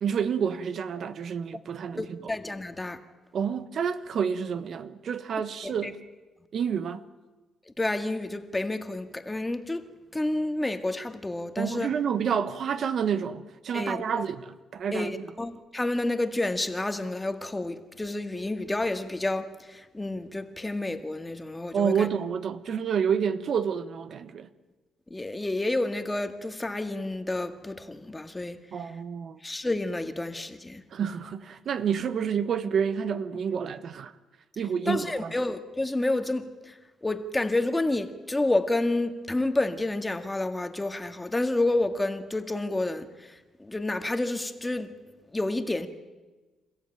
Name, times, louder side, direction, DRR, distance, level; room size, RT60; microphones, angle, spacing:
voice 1, 0.0-2.3 3.3-6.0 6.5-7.0 11.6-15.2 21.7-24.5 28.7-29.4 30.9-34.1 34.6-35.3, right 7 dB, 60° right, 1.1 m, -29 dB
voice 2, 2.0-3.0 5.6-5.9 7.8-9.8 10.1-11.9 13.7-14.2 14.9-22.1 25.1-28.6 29.4-30.8 34.9-36.7 37.0-43.1 43.6-44.9 45.3-45.9, left 2 dB, 15° left, 1.9 m, -29 dB
28.0 x 15.0 x 9.1 m
cardioid pair, 90°, 0 cm